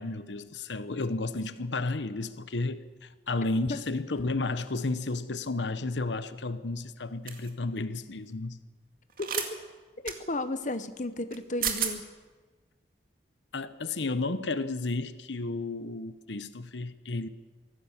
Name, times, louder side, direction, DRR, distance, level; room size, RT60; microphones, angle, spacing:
voice 1, 0.0-8.6 13.5-17.3, left 3 dB, 90° left, 1.0 m, -32 dB
sound 1, 7.3-7.5 9.2-9.5 10.1-10.2 11.3-11.4 11.6-11.9, right 8 dB, 50° right, 2.3 m, -30 dB
voice 2, 10.0-12.1, left 2 dB, 45° left, 1.0 m, -33 dB
24.0 x 16.5 x 7.4 m
head